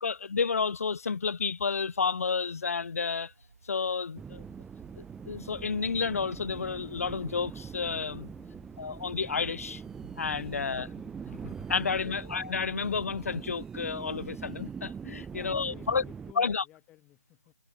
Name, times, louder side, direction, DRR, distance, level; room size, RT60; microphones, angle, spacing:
voice 1, 0.0-3.3 3.7-4.4 5.0-8.3 8.8-9.8 10.2-10.9 11.4-16.0 16.4-16.6, left 5 dB, 60° left, 0.8 m, -31 dB
sound 1, 1.8-12.0, right 5 dB, 60° right, 6.6 m, -59 dB
sound 2, 4.2-16.3, right 6 dB, 5° right, 1.3 m, -43 dB
voice 2, 8.3-8.7 10.5-11.0 15.3-17.5, left 15 dB, 10° left, 2.0 m, -55 dB
figure-of-eight pair, 160°, 9 cm